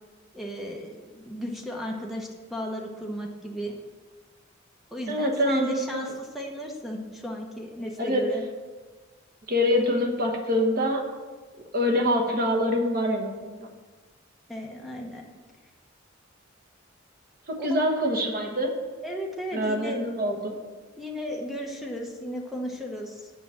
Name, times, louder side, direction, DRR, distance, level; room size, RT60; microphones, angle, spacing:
voice 1, 0.3-3.7 4.9-8.4 14.5-15.2 17.6-17.8 19.0-20.0 21.0-23.3, equal, ahead, 0 dB, 0.9 m, -35 dB
voice 2, 5.1-6.1 8.0-8.3 9.5-11.0 11.7-13.7 17.5-18.7 19.5-20.6, left 1 dB, 45° right, 2 dB, 1.2 m, -25 dB
7.5 x 5.0 x 7.0 m, 1.4 s
head